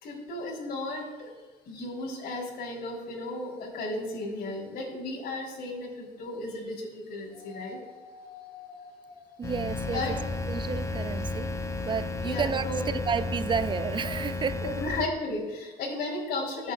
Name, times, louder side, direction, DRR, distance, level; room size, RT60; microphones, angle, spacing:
voice 1, 0.0-1.3 1.7-7.8 9.9-10.2 12.2-12.9 14.6-16.7, left 2 dB, 65° left, 4.3 m, -34 dB
sound 1, 7.3-10.5 11.9-12.0, left 5 dB, 85° left, 3.3 m, -48 dB
sound 2, 9.4-15.1, left 2 dB, 15° left, 0.9 m, -33 dB
voice 2, 9.4-10.2 10.5-11.5 11.8-14.7, right 6 dB, 30° right, 0.4 m, -31 dB
22.0 x 8.3 x 2.6 m
cardioid pair, 110°, 17 cm